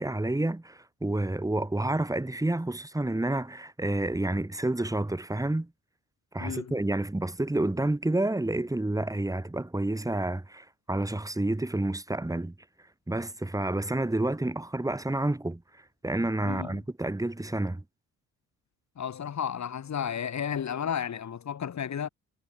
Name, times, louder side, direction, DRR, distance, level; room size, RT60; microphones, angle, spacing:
voice 1, 0.0-5.7 6.3-12.5 13.1-15.6 16.0-17.8, right 2 dB, 10° right, 1.4 m, -29 dB
voice 2, 6.4-6.8 16.4-16.8 19.0-22.1, left 8 dB, 50° left, 1.5 m, -33 dB
supercardioid pair, 50°, 36 cm